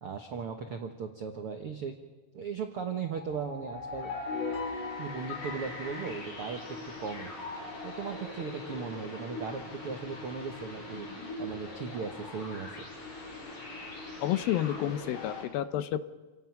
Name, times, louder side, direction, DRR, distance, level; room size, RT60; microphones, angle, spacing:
voice 1, 0.0-1.9 2.3-4.1 5.0-7.5 7.8-11.1 11.4-12.9, right 6 dB, 70° right, 5 dB, 1.3 m, -37 dB
sound 1, 3.1-7.1, left 4 dB, 55° left, 6.2 m, -39 dB
sound 2, 3.8-15.4, left 2 dB, 35° left, 5.4 m, -42 dB
voice 2, 14.2-16.0, left 12 dB, 75° left, 12 dB, 2.5 m, -30 dB
29.0 x 17.0 x 5.9 m, 1.3 s
omnidirectional pair, 4.4 m